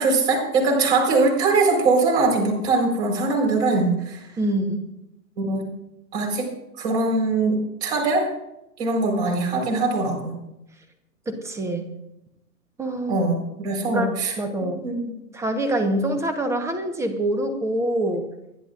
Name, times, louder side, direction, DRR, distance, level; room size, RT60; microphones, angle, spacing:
voice 1, 0.0-4.2 5.4-5.7 6.1-6.5 6.8-8.3 8.8-10.3 13.1-14.3 14.8-15.1, right 3 dB, 40° right, 0 dB, 4.5 m, -22 dB
voice 2, 4.4-4.8 11.3-11.9 12.8-13.3 13.9-14.1 14.4-14.8 15.3-18.2, right 1 dB, 5° right, 7 dB, 1.1 m, -25 dB
28.5 x 10.0 x 2.5 m, 0.88 s
figure-of-eight pair, 125°, 48 cm